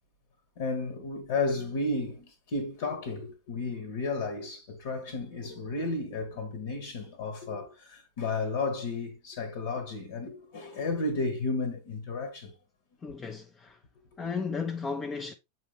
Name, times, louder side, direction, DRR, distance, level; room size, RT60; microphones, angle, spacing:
voice 1, 0.6-12.5, left 3 dB, 55° left, 1.4 m, -33 dB
voice 2, 13.0-13.8 14.2-15.3, left 5 dB, 20° left, 0.8 m, -34 dB
8.0 x 4.5 x 3.2 m
figure-of-eight pair, 90°, 0 cm